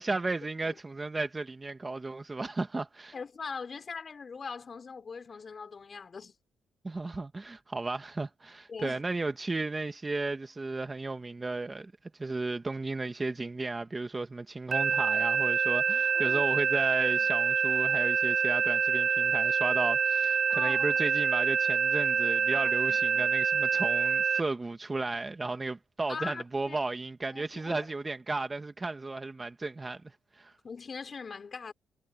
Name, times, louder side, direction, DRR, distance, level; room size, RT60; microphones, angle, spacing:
voice 1, 0.0-3.1 6.8-30.0 30.3-30.5, right 3 dB, 20° right, 1.5 m, -34 dB
voice 2, 3.1-6.4 8.7-9.0 16.1-16.4 17.2-17.3 20.5-21.0 22.5-23.3 26.1-26.8 27.3-27.9 30.6-31.7, left 5 dB, 40° left, 4.9 m, -41 dB
sound 1, 14.7-24.4, right 6 dB, 45° right, 0.7 m, -26 dB
cardioid pair, 90°, 0 cm